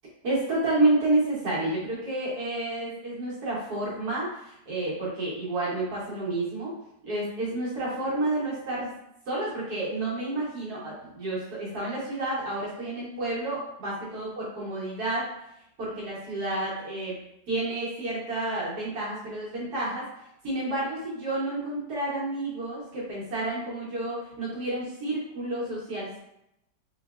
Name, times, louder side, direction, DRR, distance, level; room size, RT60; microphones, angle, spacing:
voice 1, 0.2-6.7 7.0-8.9 9.3-15.3 15.8-17.2 17.5-20.0 20.4-26.2, right 2 dB, 75° right, -7 dB, 1.6 m, -30 dB
4.4 x 3.0 x 2.4 m, 0.81 s
omnidirectional pair, 1.7 m